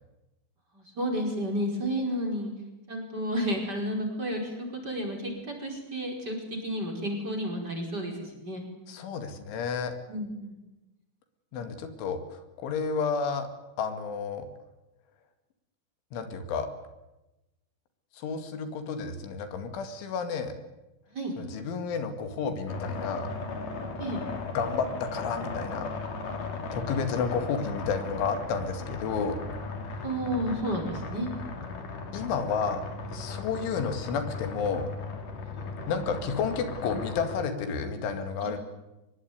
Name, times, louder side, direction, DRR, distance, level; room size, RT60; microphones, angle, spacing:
voice 1, 0.7-2.5 2.9-8.6 10.1-10.6 11.5-11.6 18.5-18.6 21.1-21.3 24.0-24.2 30.0-31.3 31.7-31.8 35.5-35.7 38.4-38.5, equal, 20° right, 2 dB, 5.2 m, -32 dB
voice 2, 8.9-9.9 11.5-13.5 13.8-14.5 16.1-16.7 18.1-20.5 21.4-23.3 24.5-25.9 26.7-29.4 32.1-34.9 35.9-38.6, left 5 dB, 80° left, 8 dB, 4.6 m, -31 dB
sound 1, 22.7-37.5, left 3 dB, 45° left, 4.3 m, -37 dB
25.0 x 21.0 x 9.6 m, 0.98 s
omnidirectional pair, 5.5 m